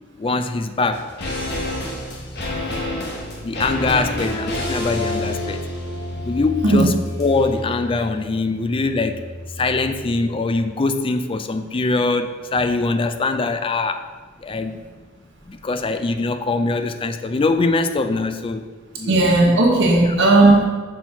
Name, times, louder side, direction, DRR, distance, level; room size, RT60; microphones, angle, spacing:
voice 1, 0.2-1.1 3.4-5.6 6.3-9.2 9.6-14.0 14.4-14.8 15.5-18.7 19.0-19.3 20.0-20.1, left 3 dB, 25° left, 9 dB, 0.4 m, -22 dB
sound 1, 0.9-10.3 10.5-10.6, left 1 dB, 55° left, 1.2 m, -29 dB
voice 2, 19.1-20.6, right 2 dB, 60° right, -1 dB, 1.3 m, -14 dB
5.7 x 4.4 x 5.7 m, 1.4 s
head